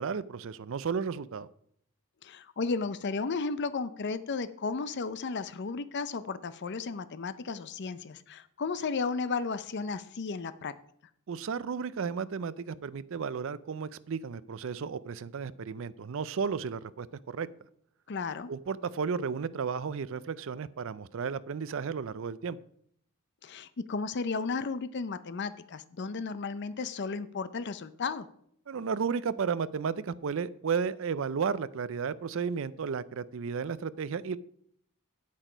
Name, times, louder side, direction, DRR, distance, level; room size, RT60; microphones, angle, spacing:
voice 1, 0.0-1.5 11.3-17.5 18.5-22.6 28.7-34.4, right 6 dB, 60° right, 16 dB, 0.4 m, -33 dB
voice 2, 2.2-10.7 18.1-18.5 23.4-28.3, left 4 dB, 50° left, 13 dB, 0.5 m, -34 dB
8.4 x 8.0 x 5.0 m, 0.68 s
head